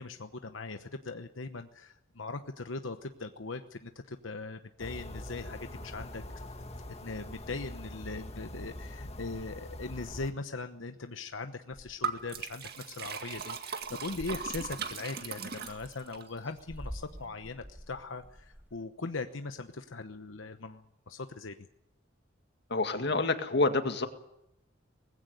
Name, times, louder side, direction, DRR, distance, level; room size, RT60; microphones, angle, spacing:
voice 1, 0.0-6.2 7.0-21.7, left 3 dB, 90° left, 8 dB, 1.1 m, -40 dB
sound 1, 4.8-10.3, left 1 dB, 35° left, 1.9 m, -43 dB
sound 2, 11.7-12.5 12.9-13.0 13.2-13.5 13.8-18.8, equal, 10° right, 2.3 m, -48 dB
Liquid, 12.0-16.2, right 5 dB, 55° right, 2.0 m, -38 dB
voice 2, 22.7-24.1, left 3 dB, 60° left, 7 dB, 2.0 m, -27 dB
20.0 x 16.0 x 9.4 m, 0.82 s
head